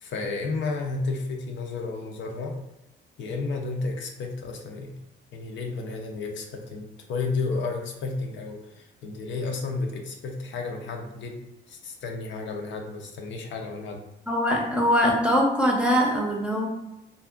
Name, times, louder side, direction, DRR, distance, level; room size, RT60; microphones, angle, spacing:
voice 1, 0.0-2.6 3.2-5.0 5.3-11.4 11.7-14.0, left 3 dB, 70° left, 1 dB, 0.6 m, -32 dB
voice 2, 14.3-16.7, equal, 5° right, -1 dB, 0.6 m, -22 dB
2.6 x 2.4 x 2.4 m, 0.92 s
cardioid pair, 90°, 20 cm